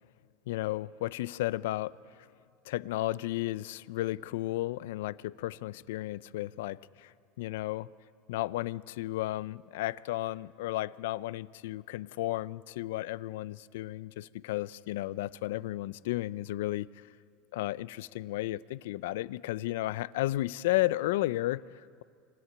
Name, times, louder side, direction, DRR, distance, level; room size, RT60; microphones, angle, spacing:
voice 1, 0.5-2.0 2.7-7.9 8.3-17.1 17.5-22.0, left 16 dB, 80° left, 19 dB, 0.5 m, -33 dB
26.5 x 14.5 x 9.8 m, 2.3 s
supercardioid pair, 120°, 0 cm